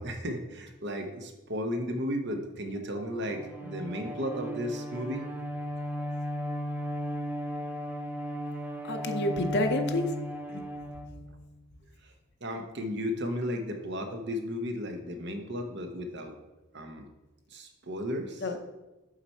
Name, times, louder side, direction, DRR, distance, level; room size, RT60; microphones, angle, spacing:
voice 1, 0.0-5.3 12.0-12.1 12.4-16.3 16.7-17.0 17.5-18.4, equal, 55° right, 5 dB, 0.8 m, -34 dB
Bowed string instrument, 3.2-11.6, equal, 10° right, 0.5 m, -36 dB
voice 2, 8.8-10.1 10.5-10.6 18.4-18.6, left 1 dB, 50° left, 6 dB, 0.7 m, -29 dB
7.3 x 4.6 x 4.3 m, 1.0 s
head